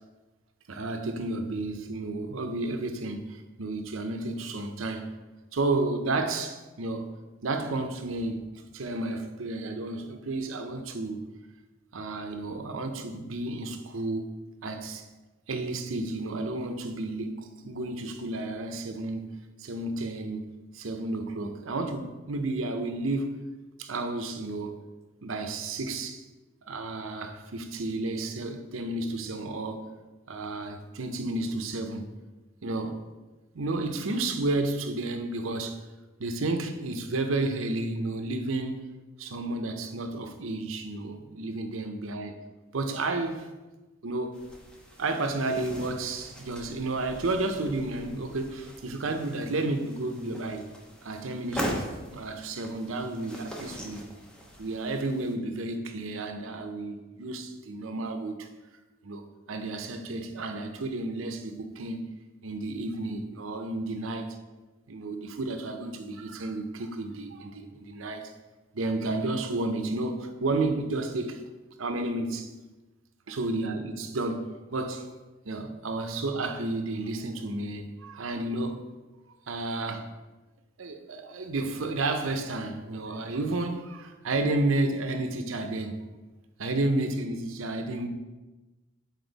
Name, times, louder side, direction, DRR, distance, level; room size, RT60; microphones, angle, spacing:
voice 1, 0.7-5.2 5.5-7.1 7.4-8.5 8.7-11.2 11.9-14.3 14.6-15.0 15.5-19.2 19.6-20.4 20.7-23.3 23.8-24.8 25.2-26.2 26.7-29.9 30.3-32.0 32.6-33.0 33.5-35.8 36.2-38.9 39.2-42.4 42.7-43.5 44.0-44.4 45.0-50.7 51.0-54.1 54.6-58.5 59.0-59.2 59.5-62.1 62.4-64.4 64.9-68.3 68.7-71.4 71.8-72.5 73.3-75.1 75.4-78.8 79.5-80.1 80.8-86.0 86.6-88.1, right 2 dB, 90° right, 0.7 m, -31 dB
sound 1, 44.3-55.3, equal, 5° left, 0.9 m, -41 dB
8.0 x 4.4 x 4.0 m
head